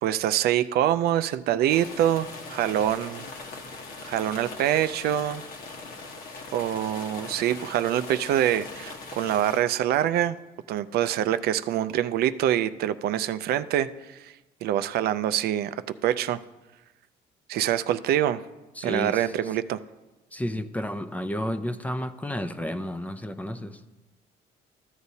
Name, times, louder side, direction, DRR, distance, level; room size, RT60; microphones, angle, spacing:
voice 1, 0.0-3.2 4.0-5.4 6.5-10.4 10.7-14.3 14.6-15.8 16.0-16.4 17.5-18.4 18.8-19.8, right 11 dB, 70° right, 12 dB, 0.4 m, -25 dB
sound 1, 1.7-9.6, left 3 dB, 55° left, 1.2 m, -41 dB
voice 2, 18.8-19.3 20.3-23.8, equal, 10° left, 10 dB, 0.5 m, -31 dB
14.0 x 8.0 x 2.7 m, 1.1 s
cardioid pair, 110°, 17 cm